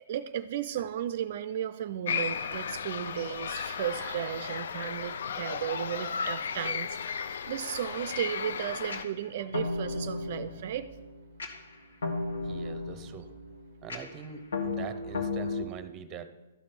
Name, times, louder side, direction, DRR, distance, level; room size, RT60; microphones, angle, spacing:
voice 1, 0.1-10.9, right 10 dB, 50° right, 13 dB, 0.4 m, -35 dB
sound 1, 2.1-9.0, left 6 dB, 65° left, 0.5 m, -35 dB
sound 2, 8.9-15.6, left 3 dB, 85° left, 1.7 m, -35 dB
voice 2, 12.4-13.3 13.8-16.3, right 7 dB, 20° right, 11 dB, 0.7 m, -43 dB
13.0 x 5.1 x 5.8 m, 1.1 s
hypercardioid pair, 155°, 0 cm